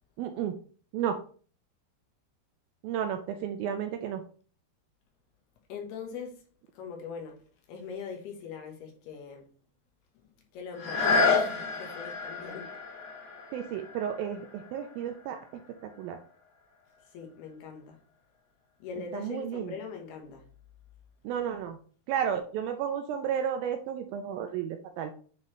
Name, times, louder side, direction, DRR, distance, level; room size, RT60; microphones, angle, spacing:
voice 1, 0.2-0.6 0.9-1.2 2.8-4.2 13.5-15.4 15.8-16.2 19.1-19.7 21.2-21.8 22.1-25.1, right 8 dB, 80° right, 2.2 m, -32 dB
voice 2, 5.7-6.4 6.7-7.4 7.7-9.5 10.2-12.7 17.1-18.0 18.8-20.5, left 6 dB, 75° left, 3.2 m, -42 dB
sound 1, 10.7-16.4 17.0-17.1, left 4 dB, 55° left, 2.2 m, -31 dB
9.4 x 3.9 x 3.1 m
omnidirectional pair, 4.7 m